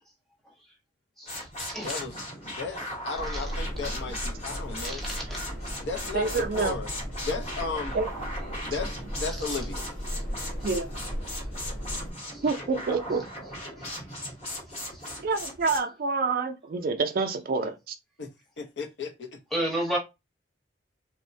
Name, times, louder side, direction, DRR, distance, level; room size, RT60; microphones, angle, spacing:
voice 1, 1.2-2.0 4.8-5.0 19.5-20.0, right 1 dB, ahead, 0.8 m, -30 dB
sound 1, 1.3-15.8, left 1 dB, 35° left, 0.9 m, -38 dB
voice 2, 1.8-5.0 5.8-6.9 7.3-7.9 8.6-9.9 18.2-18.3 18.6-19.4, left 4 dB, 70° left, 0.5 m, -35 dB
sound 2, 3.1-12.1, equal, 85° left, 1.1 m, -36 dB
voice 3, 6.1-6.7 7.9-8.1 10.6-10.9 12.4-13.3 15.2-17.9, right 4 dB, 50° right, 0.3 m, -27 dB
2.9 x 2.0 x 2.6 m
head